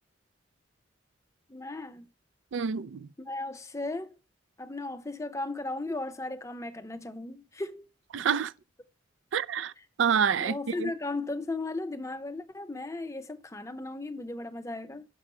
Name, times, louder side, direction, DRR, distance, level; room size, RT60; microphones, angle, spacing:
voice 1, 1.5-2.1 3.2-4.1 4.6-7.9 9.8-9.9 10.4-15.1, left 2 dB, 15° left, 0.6 m, -36 dB
voice 2, 2.5-3.1 8.1-8.5 9.3-9.7 10.0-10.9, right 7 dB, 85° right, 0.4 m, -27 dB
6.2 x 5.7 x 5.5 m
head